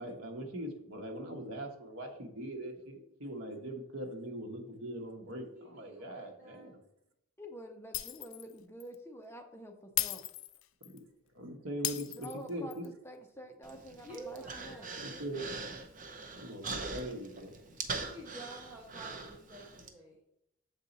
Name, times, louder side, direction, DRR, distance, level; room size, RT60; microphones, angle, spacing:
voice 1, 0.0-6.8 11.3-12.8 15.0-15.4 16.3-17.5, right 1 dB, 80° right, 2 dB, 1.2 m, -41 dB
voice 2, 5.5-6.8 14.0-15.3 18.0-20.2, right 2 dB, 10° right, -6 dB, 1.0 m, -50 dB
voice 3, 7.4-10.2 12.1-14.9, equal, 10° left, 4 dB, 0.6 m, -48 dB
Shatter, 7.9-8.5 8.8-9.0 10.0-11.0 11.8-12.9, left 15 dB, 70° left, 0.3 m, -36 dB
Human voice, 13.6-19.9, right 4 dB, 40° right, 0.6 m, -42 dB
7.3 x 4.1 x 4.0 m, 0.80 s
head